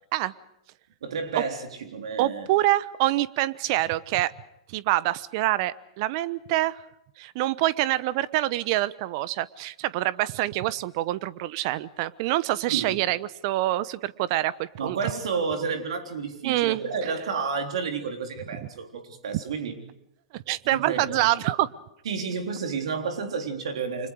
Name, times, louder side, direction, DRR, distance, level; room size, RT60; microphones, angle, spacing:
voice 1, 1.0-2.5 12.7-13.0 14.8-19.8 20.7-21.3 22.1-24.1, right 5 dB, 70° right, 5 dB, 3.8 m, -31 dB
voice 2, 2.2-4.3 4.7-6.8 7.2-15.0 16.4-16.8 18.6-18.7 19.3-19.4 20.3-21.7, right 16 dB, 50° right, 18 dB, 1.0 m, -26 dB
30.0 x 25.5 x 4.9 m, 0.79 s
hypercardioid pair, 105°, 3 cm